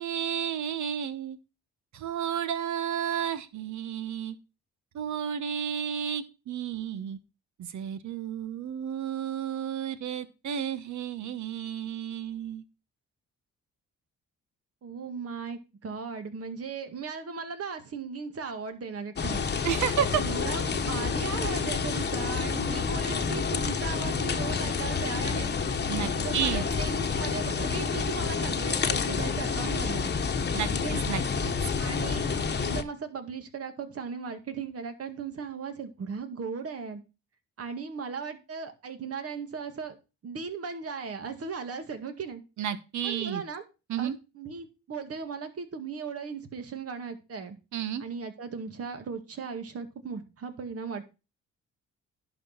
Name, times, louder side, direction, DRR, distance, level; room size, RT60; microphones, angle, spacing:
voice 1, 0.0-1.4 1.9-4.4 4.9-7.2 7.6-12.6 19.6-20.2 25.9-26.6 30.5-31.7 42.6-43.4 43.9-44.2 47.7-48.0, right 9 dB, 70° right, 12 dB, 1.3 m, -32 dB
voice 2, 14.8-19.6 20.2-25.6 26.1-30.1 30.7-31.0 31.8-32.3 32.6-37.0 37.6-40.0 40.2-42.4 43.0-43.6 44.0-44.1 44.4-47.6 48.0-51.2, right 5 dB, 50° right, 7 dB, 2.0 m, -37 dB
sound 1, 19.2-32.8, left 5 dB, 35° left, 1.2 m, -29 dB
11.0 x 4.7 x 5.8 m, 0.29 s
cardioid pair, 90°, 30 cm